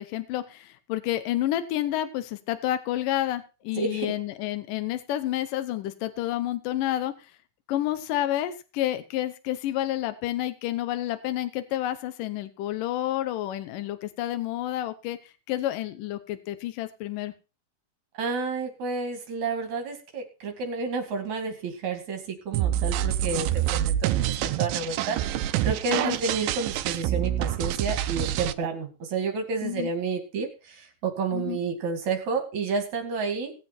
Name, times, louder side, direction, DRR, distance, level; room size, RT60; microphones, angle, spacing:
voice 1, 0.0-7.3 7.7-17.3 25.9-26.2 29.6-29.9 31.3-31.6, left 13 dB, 75° left, 10 dB, 2.5 m, -29 dB
voice 2, 3.8-4.1 18.1-25.2 25.6-33.5, right 4 dB, 60° right, 5 dB, 3.5 m, -30 dB
sound 1, 22.5-28.5, right 12 dB, 90° right, 2.5 m, -27 dB
18.5 x 7.6 x 4.4 m, 0.32 s
omnidirectional pair, 3.9 m